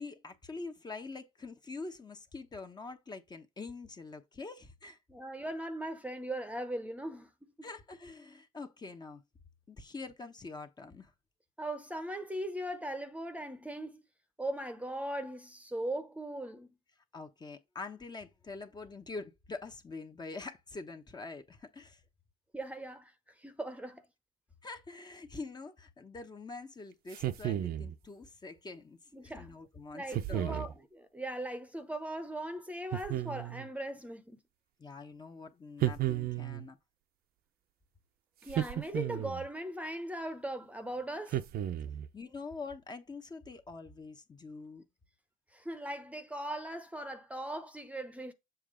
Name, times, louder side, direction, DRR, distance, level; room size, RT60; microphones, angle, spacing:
voice 1, 0.0-5.0 7.6-9.2 9.7-11.1 17.1-22.0 24.6-30.6 34.8-36.8 42.1-44.8, left 3 dB, 25° left, 1.0 m, -45 dB
voice 2, 5.1-7.3 11.6-14.0 14.4-16.7 22.5-23.1 23.4-24.0 29.1-29.5 29.9-34.4 38.4-41.4 45.5-48.3, right 1 dB, 10° right, 0.9 m, -39 dB
Voice Man mmh proud closed-mouth, 27.1-28.0 30.1-30.7 32.9-33.7 35.8-36.7 38.5-39.5 41.3-42.1, right 12 dB, 65° right, 0.7 m, -33 dB
7.2 x 3.0 x 5.0 m
cardioid pair, 110°, 17 cm